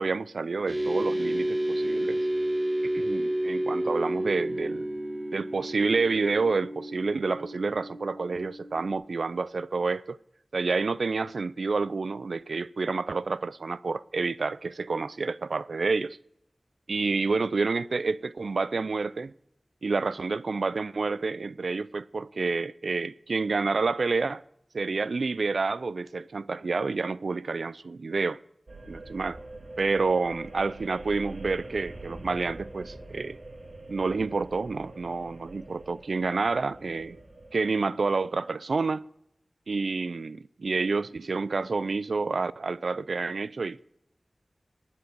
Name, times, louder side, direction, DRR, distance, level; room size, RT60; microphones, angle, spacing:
voice 1, 0.0-2.3 2.9-4.9 5.3-10.2 10.5-16.2 16.9-19.3 19.8-24.4 24.7-28.4 28.9-29.4 29.8-33.4 33.9-37.2 37.5-39.1 39.7-43.8, right 4 dB, 90° right, 0.4 m, -29 dB
sound 1, 0.7-8.9, right 1 dB, 40° right, 2.3 m, -30 dB
sound 2, 28.7-37.5, right 2 dB, 70° right, 2.5 m, -44 dB
11.0 x 9.7 x 6.6 m
wide cardioid pair, 60°, 0 cm